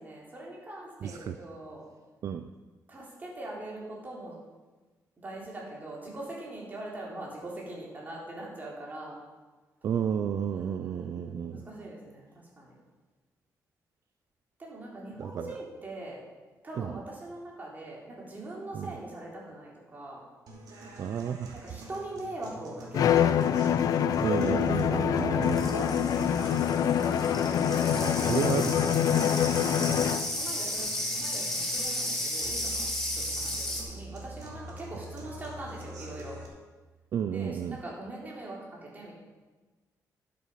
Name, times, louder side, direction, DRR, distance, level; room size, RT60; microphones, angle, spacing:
voice 1, 0.0-1.9 2.9-4.4 5.2-9.2 10.5-12.8 14.6-16.2 16.6-20.2 21.5-23.6 24.8-27.5 29.4-29.9 30.3-36.4 37.3-39.1, right 2 dB, 25° right, -4 dB, 3.7 m, -42 dB
voice 2, 1.0-1.4 2.2-2.5 9.8-11.7 15.2-15.5 16.8-17.0 18.7-18.9 21.0-21.6 24.2-25.6 28.0-29.0 37.1-37.8, right 8 dB, 55° right, 9 dB, 0.4 m, -32 dB
sound 1, 20.5-36.5, right 1 dB, 80° right, 2.6 m, -45 dB
Bowed string instrument, 22.9-30.4, left 9 dB, 70° left, 0.5 m, -25 dB
sound 2, 25.4-33.8, left 1 dB, 10° left, 2.4 m, -34 dB
12.0 x 7.5 x 5.7 m, 1.2 s
cardioid pair, 135°, 7 cm